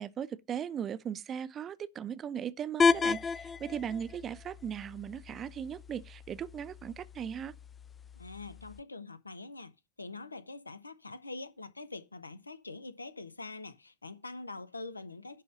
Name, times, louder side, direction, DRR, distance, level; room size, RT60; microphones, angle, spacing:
voice 1, 0.0-7.6, right 8 dB, 30° right, 0.6 m, -38 dB
sound 1, 2.8-8.8, left 5 dB, 20° left, 0.5 m, -33 dB
voice 2, 8.2-9.7 10.0-15.4, left 3 dB, 85° left, 0.9 m, -44 dB
11.0 x 3.8 x 6.6 m
figure-of-eight pair, 80°, 0 cm